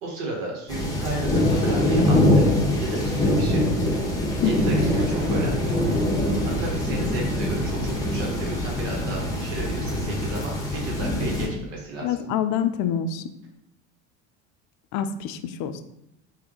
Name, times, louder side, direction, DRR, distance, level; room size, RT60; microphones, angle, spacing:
voice 1, 0.0-3.6 4.4-5.7 6.4-12.1, right 2 dB, 70° right, -1 dB, 1.4 m, -33 dB
sound 1, 0.7-11.5, left 1 dB, 10° left, 1.0 m, -23 dB
voice 2, 4.4-4.8 12.0-13.2 14.9-15.8, left 8 dB, 55° left, 10 dB, 0.4 m, -26 dB
sound 2, 4.4-10.0, right 3 dB, 55° right, 0.8 m, -37 dB
3.3 x 2.7 x 3.7 m, 0.84 s
hypercardioid pair, 90°, 36 cm